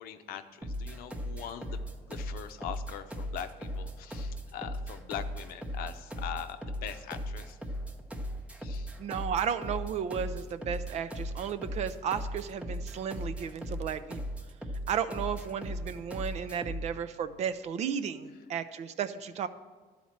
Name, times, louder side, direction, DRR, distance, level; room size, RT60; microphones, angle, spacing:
voice 1, 0.0-7.6 8.6-9.0, left 10 dB, 70° left, 9 dB, 0.7 m, -42 dB
sound 1, 0.6-16.9, equal, 5° right, 0.7 m, -37 dB
voice 2, 9.0-14.2 14.9-19.5, right 8 dB, 45° right, 12 dB, 0.5 m, -34 dB
12.5 x 4.2 x 7.2 m, 1.4 s
cardioid pair, 140°, 16 cm